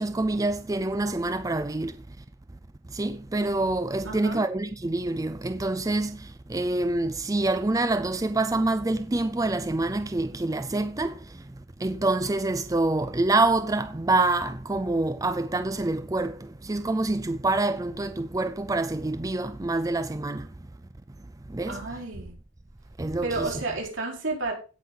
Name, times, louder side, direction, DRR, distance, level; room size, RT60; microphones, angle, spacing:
voice 1, 0.0-2.0 2.9-11.4 11.8-20.5 21.5-21.8 23.0-23.5, right 2 dB, 15° right, 0.5 m, -26 dB
voice 2, 4.0-4.4 21.7-22.3 23.2-24.5, right 3 dB, 70° right, 5.4 m, -31 dB
16.5 x 5.6 x 5.4 m
head